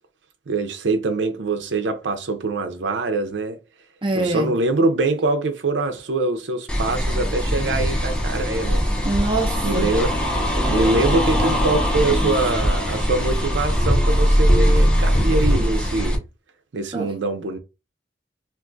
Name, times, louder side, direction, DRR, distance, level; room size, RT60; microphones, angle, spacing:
voice 1, 0.5-3.6 4.1-8.8 9.6-10.2 10.7-16.2 16.7-17.6, right 3 dB, 75° right, 0.5 m, -24 dB
voice 2, 4.0-4.5 9.0-9.9 16.9-17.1, right 2 dB, 30° right, 0.6 m, -24 dB
sound 1, 6.7-16.2, equal, 5° left, 0.7 m, -20 dB
2.5 x 2.4 x 3.8 m
head